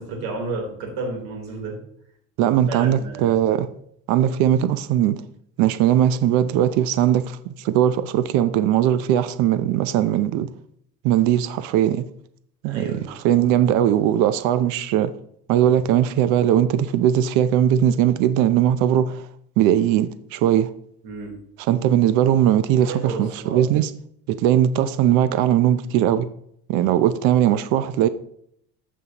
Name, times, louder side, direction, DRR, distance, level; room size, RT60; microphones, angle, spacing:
voice 1, 0.0-1.8 2.4-3.4 12.6-13.1 21.0-21.3 22.8-23.6, right 3 dB, 90° right, 3.7 m, -32 dB
voice 2, 2.4-3.7 4.1-5.2 5.6-10.5 11.0-12.1 12.6-15.1 15.5-19.3 19.6-20.7 21.7-23.9 24.3-26.3 26.7-28.1, right 11 dB, 60° right, 0.6 m, -19 dB
15.0 x 5.5 x 2.9 m
cardioid pair, 155°, 32 cm